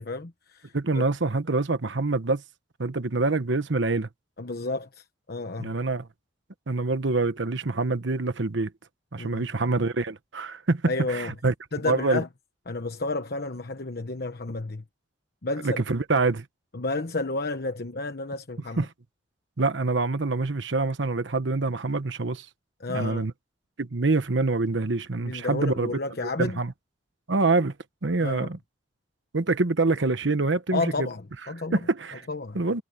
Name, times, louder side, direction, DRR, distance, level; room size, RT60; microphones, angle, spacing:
voice 1, 0.0-1.0 4.4-5.7 9.2-9.4 10.9-11.3 11.7-12.3 12.7-14.8 15.4-15.8 16.7-18.9 22.8-23.3 25.2-26.6 28.2-28.5 30.7-31.8 32.3-32.6, left 3 dB, 55° left, 1.1 m, -31 dB
voice 2, 0.7-2.4 2.8-4.1 5.6-6.1 6.7-8.7 9.1-11.5 11.8-12.2 15.6-16.4 18.8-18.9 19.6-22.4 22.9-23.3 23.8-25.9 26.2-26.7 27.3-27.7 28.0-28.6 29.3-31.1 31.7-32.2 32.5-32.8, right 3 dB, 85° right, 1.1 m, -25 dB
head